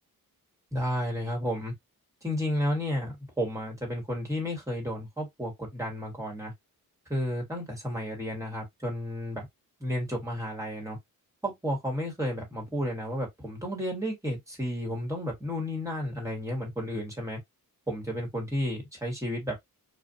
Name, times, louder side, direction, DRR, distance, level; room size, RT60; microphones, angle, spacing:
voice 1, 0.7-1.7 2.2-6.5 7.1-9.4 9.8-11.0 11.4-17.4 17.9-19.5, equal, 10° right, 1.5 m, -32 dB
2.4 x 2.4 x 2.6 m
cardioid pair, 75°, 37 cm